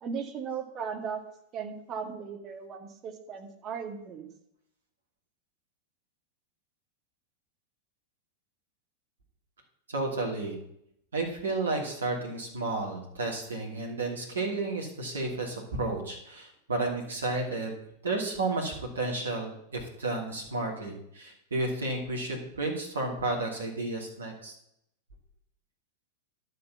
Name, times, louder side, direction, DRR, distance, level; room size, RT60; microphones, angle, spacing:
voice 1, 0.0-1.2 1.5-4.3, right 6 dB, 30° right, 4 dB, 2.1 m, -37 dB
voice 2, 9.9-10.6 11.1-24.5, right 2 dB, 70° right, -1 dB, 2.9 m, -32 dB
11.5 x 6.8 x 7.1 m, 0.74 s
figure-of-eight pair, 90°, 0 cm